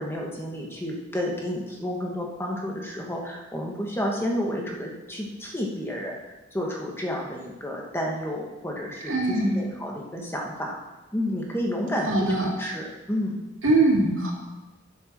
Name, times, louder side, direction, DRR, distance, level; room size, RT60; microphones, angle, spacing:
voice 1, 0.0-6.2 6.5-10.8 11.1-12.1 12.6-13.4, equal, 10° left, -1 dB, 1.5 m, -31 dB
voice 2, 9.1-9.6 12.1-12.5 13.6-14.3, right 2 dB, 85° right, -2 dB, 2.3 m, -22 dB
8.1 x 7.7 x 6.0 m, 1.1 s
head